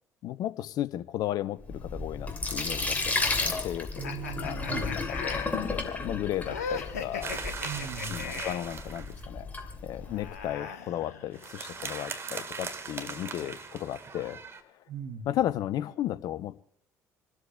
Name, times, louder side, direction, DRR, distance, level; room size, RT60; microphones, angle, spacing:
voice 1, 0.2-4.1 4.4-7.3 8.1-9.5 9.8-14.4 15.3-16.6, left 12 dB, 50° left, 16 dB, 0.7 m, -34 dB
Sink (filling or washing), 1.6-10.4, left 3 dB, 20° left, 2.5 m, -34 dB
sound 1, 4.0-8.7 9.9-11.6, left 5 dB, 75° left, 1.0 m, -39 dB
voice 2, 4.0-5.0 7.6-8.4 14.9-15.4, right 6 dB, 55° right, 3 dB, 2.9 m, -38 dB
sound 2, 7.2-9.2 11.3-14.6, right 5 dB, 30° right, 1.6 m, -39 dB
28.0 x 12.5 x 2.3 m, 0.71 s
figure-of-eight pair, 55°, 8 cm